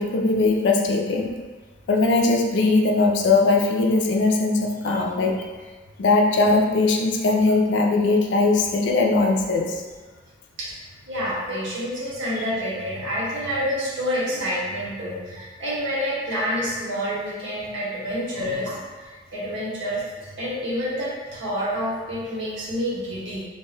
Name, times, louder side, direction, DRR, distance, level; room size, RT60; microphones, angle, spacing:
voice 1, 0.0-1.4 1.9-5.4 6.0-9.8, left 3 dB, 75° left, 2 dB, 0.4 m, -20 dB
voice 2, 11.1-20.0 20.4-23.5, equal, 85° right, -7 dB, 0.9 m, -28 dB
2.6 x 2.2 x 3.2 m, 1.3 s
head